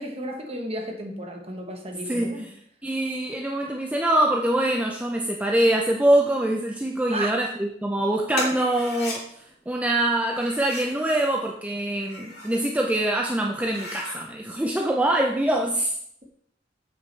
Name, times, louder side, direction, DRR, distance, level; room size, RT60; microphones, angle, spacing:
voice 1, 0.0-2.5 7.1-7.3, right 1 dB, 30° right, 1.0 m, -33 dB
voice 2, 2.8-9.3 9.7-15.9, right 1 dB, 10° right, 0.4 m, -24 dB
sound 1, 8.3-9.2 10.3-11.0 11.9-12.6 13.1-13.2 13.5-14.2, left 2 dB, 55° left, 2.6 m, -35 dB
7.8 x 6.0 x 3.3 m
head